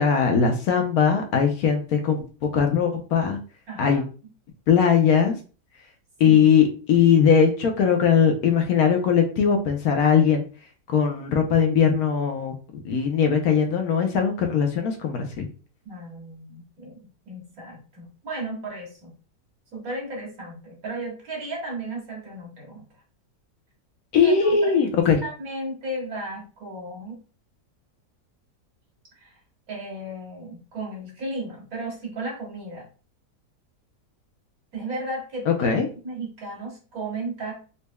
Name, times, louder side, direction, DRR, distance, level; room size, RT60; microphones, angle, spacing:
voice 1, 0.0-2.2 2.5-3.4 3.8-4.0 4.7-5.4 6.2-10.4 10.9-12.5 12.8-15.5 24.1-25.2 35.5-35.9, left 7 dB, 70° left, 4 dB, 1.2 m, -20 dB
voice 2, 3.7-4.0 6.2-6.6 15.8-19.1 19.7-22.8 24.2-24.7 25.2-27.2 29.2-29.3 29.7-32.9 34.7-37.6, right 2 dB, 65° right, -2 dB, 1.9 m, -35 dB
4.1 x 3.3 x 2.2 m, 0.36 s
omnidirectional pair, 1.7 m